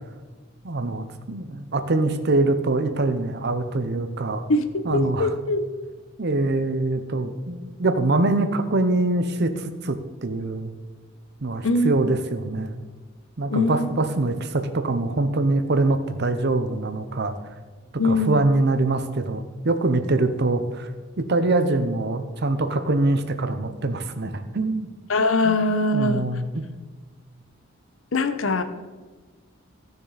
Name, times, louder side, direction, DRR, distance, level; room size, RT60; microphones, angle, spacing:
voice 1, 0.6-4.4 4.8-5.4 6.2-10.0 10.2-10.7 11.4-12.8 13.4-17.4 18.0-20.9 21.2-24.9 25.4-25.6 25.9-26.6, right 2 dB, 55° right, 9 dB, 0.8 m, -24 dB
voice 2, 4.9-5.6 11.6-11.9 13.5-13.9 18.0-18.3 25.1-26.3 28.1-28.6, left 2 dB, 90° left, 9 dB, 0.8 m, -22 dB
14.5 x 6.7 x 4.0 m, 1.4 s
head